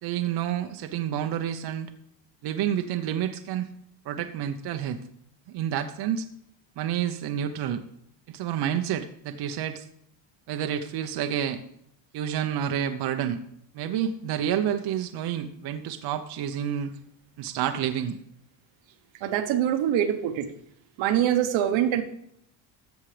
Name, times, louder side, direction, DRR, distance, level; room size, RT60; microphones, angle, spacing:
voice 1, 0.0-1.9 2.4-3.7 4.0-5.0 5.5-6.3 6.8-7.8 8.3-9.8 10.5-11.6 12.1-13.4 13.7-16.9 17.4-18.2, right 9 dB, 55° right, 6 dB, 0.7 m, -29 dB
voice 2, 19.2-20.5 21.0-22.0, right 10 dB, 75° right, 8 dB, 1.1 m, -24 dB
13.5 x 7.3 x 3.3 m, 0.73 s
cardioid pair, 125°, 46 cm